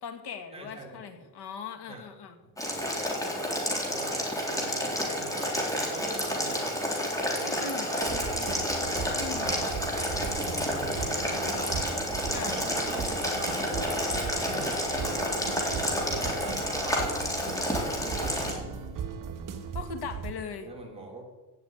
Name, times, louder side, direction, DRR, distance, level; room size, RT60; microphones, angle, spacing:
voice 1, 0.0-2.4 7.4-7.9 9.1-9.5 12.3-12.6 19.7-20.7, left 6 dB, 65° left, 7 dB, 2.3 m, -39 dB
voice 2, 0.5-1.3 1.9-2.1 2.4-2.5 3.8-4.2 4.5-6.8 7.4-8.6 9.3-9.6 10.5-11.8 12.3-14.1 14.5-14.8 16.0-17.0 18.0-18.6 20.6-21.3, right 2 dB, 15° right, -1 dB, 3.0 m, -42 dB
Boiling, 2.6-18.5, left 1 dB, 10° left, 3.9 m, -30 dB
sound 1, 8.0-20.3, right 7 dB, 50° right, 1.8 m, -38 dB
16.5 x 6.9 x 9.6 m, 1.2 s
cardioid pair, 135°, 41 cm